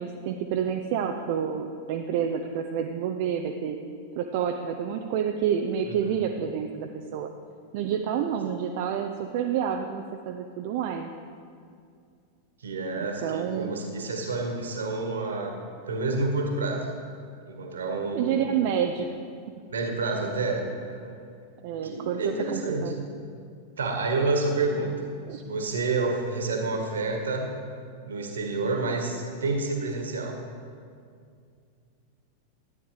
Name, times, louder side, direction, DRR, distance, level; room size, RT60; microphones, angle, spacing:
voice 1, 0.0-3.8 4.2-7.3 7.7-11.1 13.0-13.7 18.1-19.1 21.6-22.9 25.3-25.4, right 8 dB, 50° right, 4 dB, 0.6 m, -29 dB
voice 2, 12.6-15.6 15.9-16.9 17.5-18.4 19.7-21.2 21.8-22.9 23.8-25.1 25.4-27.5 28.0-30.4, right 3 dB, 70° right, 3 dB, 1.8 m, -29 dB
12.5 x 9.5 x 5.1 m, 2.3 s
figure-of-eight pair, 90°, 0 cm